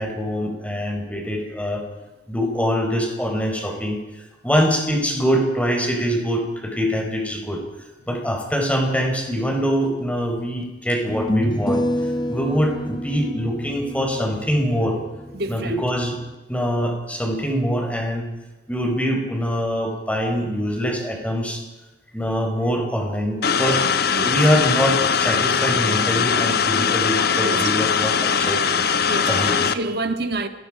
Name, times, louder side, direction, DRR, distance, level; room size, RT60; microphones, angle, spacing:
voice 1, 0.0-1.8 2.3-4.0 4.4-7.6 8.0-11.8 12.3-15.0 15.5-16.1 16.5-18.3 18.7-21.6 22.1-23.8 24.2-28.6 29.3-29.5, equal, 5° left, 4.9 m, -23 dB
sound 1, 10.0-10.1 11.1-16.3, left 1 dB, 25° left, 1.1 m, -28 dB
voice 2, 15.3-15.9 24.1-24.4 27.4-27.9 29.0-30.5, right 2 dB, 55° right, 1.7 m, -28 dB
sound 2, 23.4-29.7, left 6 dB, 55° left, 1.1 m, -21 dB
29.5 x 19.5 x 5.1 m
head